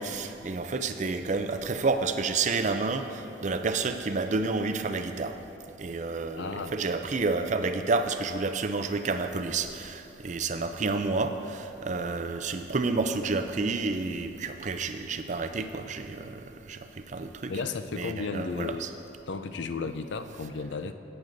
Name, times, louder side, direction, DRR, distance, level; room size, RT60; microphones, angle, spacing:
voice 1, 0.0-5.4 5.8-16.4 16.7-16.8 17.1-17.5 18.0-18.9, right 3 dB, 35° right, 8 dB, 0.4 m, -30 dB
voice 2, 6.3-6.8 17.5-18.8 19.3-20.9, left 4 dB, 60° left, 10 dB, 0.4 m, -34 dB
18.0 x 8.0 x 2.6 m, 2.9 s
head